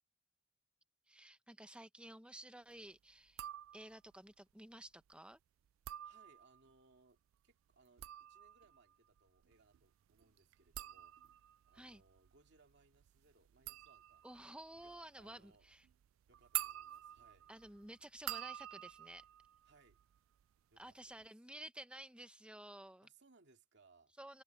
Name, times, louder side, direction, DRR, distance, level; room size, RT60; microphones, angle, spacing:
voice 1, 1.1-3.5 3.7-5.4 11.7-12.0 14.2-15.9 17.5-19.2 20.8-23.1 24.2-24.4, right 1 dB, 5° right, 1.0 m, -53 dB
sound 1, 3.3-4.1 5.7-6.7 7.7-20.4 20.7-21.3, right 15 dB, 85° right, 0.3 m, -48 dB
voice 2, 6.0-11.1 11.7-14.2 14.7-15.7 16.3-17.5 19.6-20.0 20.7-21.2 23.0-24.1, right 3 dB, 60° right, 2.5 m, -69 dB
head